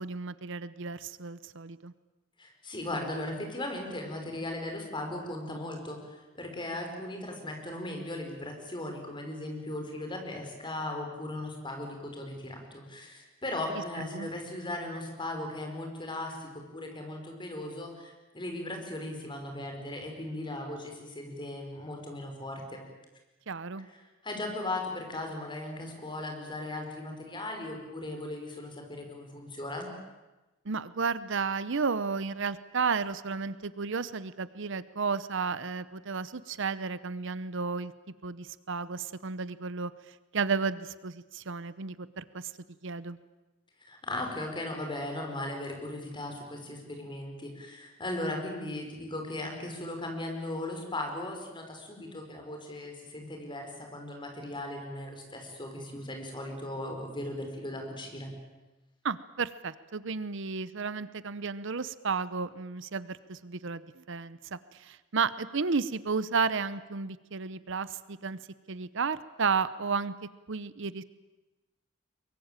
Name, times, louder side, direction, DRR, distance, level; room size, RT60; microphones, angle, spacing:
voice 1, 0.0-1.9 14.0-14.3 23.5-23.9 30.6-37.9 38.2-42.5 42.8-43.2 59.0-68.4 68.7-70.1 70.5-71.0, right 5 dB, 65° right, 16 dB, 0.8 m, -33 dB
voice 2, 2.4-22.8 24.2-29.9 43.8-58.3, left 1 dB, 25° left, 3 dB, 5.3 m, -37 dB
23.5 x 23.0 x 9.0 m, 1.1 s
head